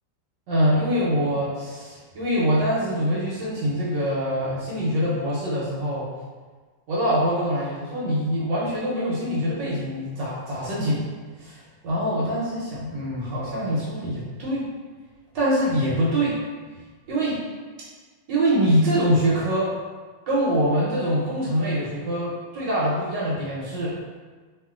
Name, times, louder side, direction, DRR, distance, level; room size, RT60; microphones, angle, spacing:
voice 1, 0.5-6.1 6.9-11.0 11.4-11.6 11.8-14.7 15.3-16.4 17.1-17.4 18.3-19.7 20.3-24.0, equal, 70° right, -7 dB, 1.4 m, -24 dB
3.0 x 2.5 x 2.4 m, 1.4 s
omnidirectional pair, 2.0 m